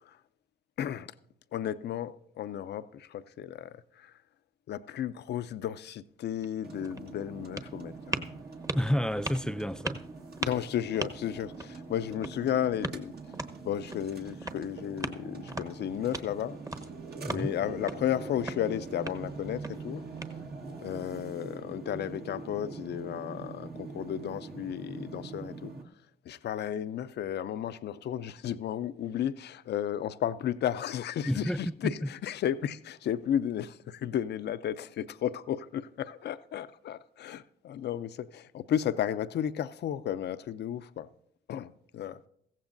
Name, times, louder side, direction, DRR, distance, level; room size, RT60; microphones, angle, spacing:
voice 1, 0.8-1.1 1.5-4.1 4.7-8.3 10.4-13.1 13.6-16.6 17.3-20.0 20.8-25.7 26.3-41.1 41.5-42.2, left 10 dB, 65° left, 0.5 m, -33 dB
sound 1, 6.3-20.8, right 1 dB, 20° right, 1.0 m, -41 dB
sound 2, 6.6-25.8, right 4 dB, 60° right, 1.6 m, -43 dB
voice 2, 8.7-10.0 17.2-17.5 31.3-31.9, equal, 5° left, 0.4 m, -30 dB
15.5 x 15.0 x 2.6 m
supercardioid pair, 60°, 18 cm